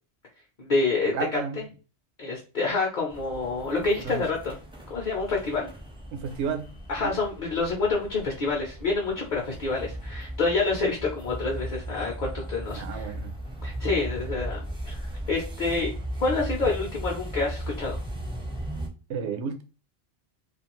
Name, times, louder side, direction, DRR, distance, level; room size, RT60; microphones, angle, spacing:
voice 1, 0.6-1.4 2.2-4.6 4.9-5.7 6.9-13.1 13.6-15.9 16.2-18.0, left 3 dB, 50° left, 0.7 m, -27 dB
voice 2, 1.1-1.7 4.0-4.2 6.1-6.7 7.0-7.2 12.8-13.3 19.1-19.6, right 6 dB, 75° right, 0.9 m, -32 dB
sound 1, 3.1-18.9, right 1 dB, 5° right, 0.4 m, -37 dB
2.5 x 2.3 x 2.9 m
omnidirectional pair, 1.2 m